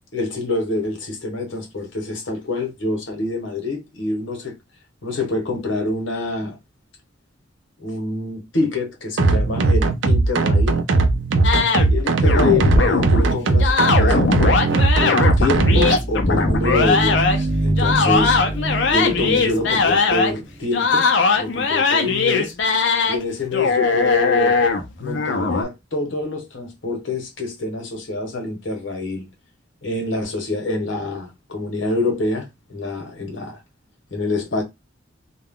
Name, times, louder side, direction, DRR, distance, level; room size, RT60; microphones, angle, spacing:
voice 1, 0.1-4.5 5.0-6.6 7.8-10.8 11.9-18.4 18.9-21.1 21.3-22.5 23.1-24.6 25.0-29.3 29.8-33.6 34.1-34.6, left 3 dB, 85° left, 1.0 m, -26 dB
sound 1, 9.2-16.0, right 3 dB, 75° right, 0.5 m, -18 dB
sound 2, 11.4-13.2 13.6-17.4 17.8-20.4 20.7-23.2 23.5-25.6, left 4 dB, 65° left, 0.6 m, -19 dB
sound 3, 15.4-20.7, right 1 dB, 15° right, 0.9 m, -25 dB
2.4 x 2.2 x 3.5 m
head